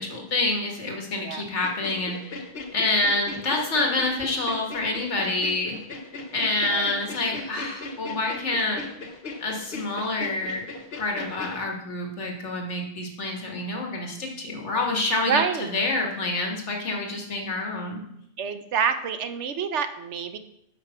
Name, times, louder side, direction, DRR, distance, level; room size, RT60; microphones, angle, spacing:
voice 1, 0.0-2.4 2.7-5.8 6.3-8.8 9.4-10.7 10.9-15.4 15.7-18.0, left 2 dB, 85° left, 1 dB, 1.9 m, -27 dB
sound 1, 1.6-11.6, left 3 dB, 60° left, 1.2 m, -38 dB
voice 2, 15.3-15.7 18.4-20.4, right 7 dB, 85° right, 9 dB, 1.1 m, -27 dB
8.2 x 5.5 x 5.6 m, 0.77 s
omnidirectional pair, 1.2 m